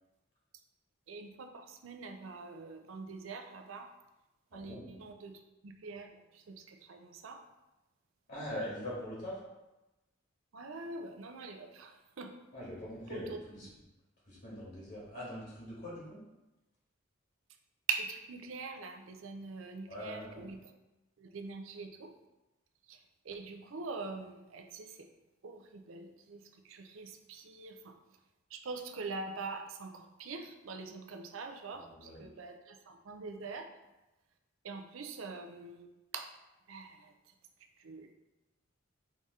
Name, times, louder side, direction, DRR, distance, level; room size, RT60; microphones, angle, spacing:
voice 1, 1.1-3.9 4.5-7.4 10.5-12.3 13.1-13.4 17.9-20.6 21.2-22.1 22.9-25.1 25.4-27.9 28.5-33.7 34.6-36.3 36.7-37.1 37.8-38.1, right 4 dB, 75° right, 5 dB, 0.5 m, -43 dB
voice 2, 4.5-4.8 8.3-9.4 12.5-13.7 14.3-16.2 19.9-20.5 31.7-32.2, left 1 dB, 50° left, -7 dB, 1.4 m, -42 dB
4.8 x 2.8 x 3.6 m, 1.0 s
head